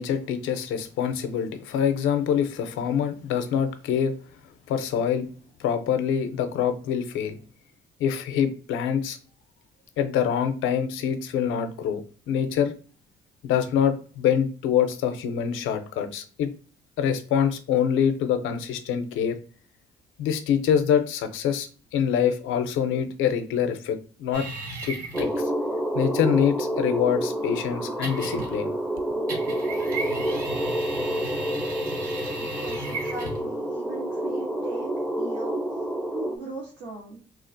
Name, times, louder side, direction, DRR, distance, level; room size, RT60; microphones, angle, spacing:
voice 1, 0.0-4.1 4.7-5.3 5.6-7.4 8.0-9.2 10.0-12.0 12.3-12.7 13.4-16.5 17.0-19.4 20.2-24.5 24.8-25.3 25.9-28.7, left 8 dB, 90° left, 9 dB, 0.5 m, -25 dB
sound 1, 24.3-25.4 28.0-28.7 29.3-33.5, right 2 dB, 45° right, 1.6 m, -35 dB
sound 2, 25.1-36.4, right 1 dB, 5° right, 0.5 m, -28 dB
voice 2, 32.3-34.9 35.2-35.6 36.1-37.2, right 2 dB, 75° right, -4 dB, 1.1 m, -39 dB
3.8 x 2.4 x 2.5 m, 0.39 s
cardioid pair, 90°, 20 cm